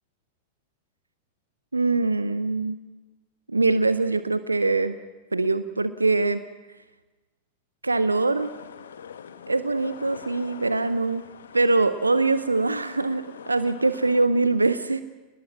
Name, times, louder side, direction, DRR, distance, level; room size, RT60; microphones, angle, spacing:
voice 1, 1.7-2.8 3.5-5.0 5.3-6.4 7.8-8.5 9.5-11.2 11.5-15.0, right 3 dB, 80° right, 13 dB, 0.7 m, -23 dB
sound 1, 8.4-14.3, left 8 dB, 65° left, 1.1 m, -44 dB
29.5 x 20.0 x 6.0 m, 1.2 s
figure-of-eight pair, 90°, 0 cm